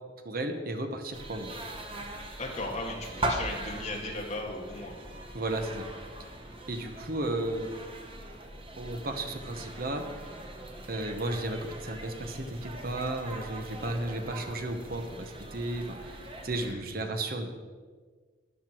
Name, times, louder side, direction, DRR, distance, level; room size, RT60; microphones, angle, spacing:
voice 1, 0.2-1.5 5.3-5.9 6.7-7.7 8.8-10.3 10.9-17.5, right 1 dB, 50° right, 6 dB, 1.0 m, -34 dB
sound 1, 1.1-16.7, right 1 dB, 30° right, 1.1 m, -40 dB
voice 2, 2.4-5.1 16.5-16.8, left 2 dB, 35° left, -1 dB, 2.1 m, -37 dB
12.5 x 10.5 x 4.5 m, 1.5 s
head